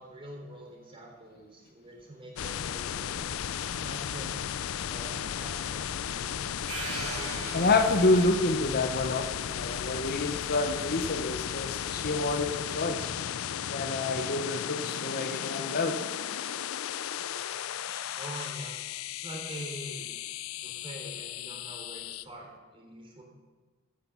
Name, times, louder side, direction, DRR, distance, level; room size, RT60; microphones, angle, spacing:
voice 1, 0.0-3.3 3.7-4.5 4.9-5.8 6.1-6.5 18.2-18.8 19.1-20.1 20.6-23.2, right 1 dB, 25° right, 0 dB, 3.7 m, -44 dB
sound 1, 2.4-22.2, left 9 dB, 70° left, 0.5 m, -35 dB
sound 2, 6.7-8.6, right 3 dB, 90° right, 5.0 m, -39 dB
voice 2, 7.5-13.1 13.7-16.0 17.9-18.0, left 2 dB, 45° left, 6 dB, 0.9 m, -28 dB
13.5 x 10.0 x 7.3 m, 1.3 s
head